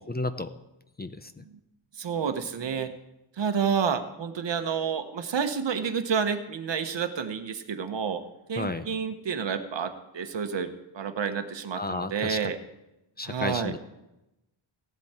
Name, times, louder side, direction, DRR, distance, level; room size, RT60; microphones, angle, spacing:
voice 1, 0.1-0.5 1.0-1.4 8.6-8.9 11.8-12.5 13.2-13.8, left 2 dB, 20° left, 10 dB, 0.5 m, -32 dB
voice 2, 2.0-2.9 3.4-8.2 8.5-12.6 13.2-13.7, right 6 dB, 60° right, 8 dB, 1.0 m, -29 dB
16.0 x 11.0 x 4.4 m, 0.93 s
wide cardioid pair, 125°, 48 cm